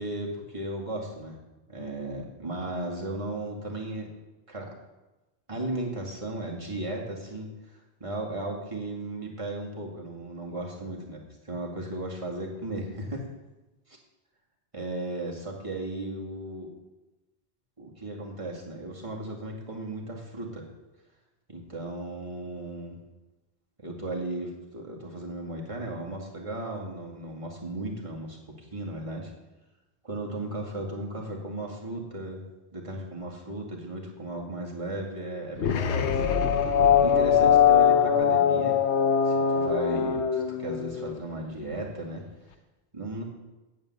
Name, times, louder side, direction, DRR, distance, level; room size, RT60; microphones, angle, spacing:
voice 1, 0.0-1.4 1.7-4.1 4.5-4.7 5.5-13.3 14.7-16.7 17.8-20.7 21.5-23.0 23.8-29.3 30.0-32.4 32.7-36.3 36.6-38.8 39.2-42.2 42.9-43.2, right 1 dB, 30° right, -2 dB, 2.2 m, -35 dB
sound 1, 35.6-41.1, left 8 dB, 85° left, 1.1 m, -22 dB
8.8 x 7.7 x 8.5 m, 1.1 s
omnidirectional pair, 1.1 m